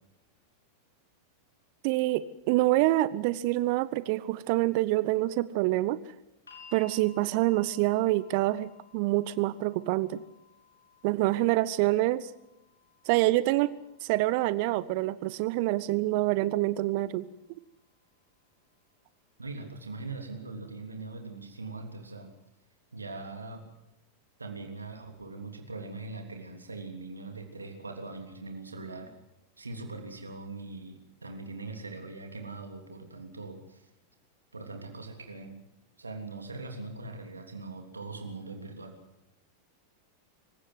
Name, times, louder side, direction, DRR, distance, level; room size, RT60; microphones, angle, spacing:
voice 1, 1.8-6.0 6.7-10.2 11.0-12.3 13.1-13.8 14.0-17.3, right 17 dB, 45° right, 18 dB, 0.8 m, -26 dB
sound 1, 6.5-18.6 19.6-19.7, left 5 dB, 75° left, 4.6 m, -58 dB
voice 2, 19.4-22.3 22.9-23.6 24.4-29.1 29.6-33.9 34.5-35.6 36.0-38.9, right 3 dB, 80° right, 4 dB, 3.2 m, -41 dB
26.0 x 16.5 x 7.8 m, 0.86 s
figure-of-eight pair, 90°, 0 cm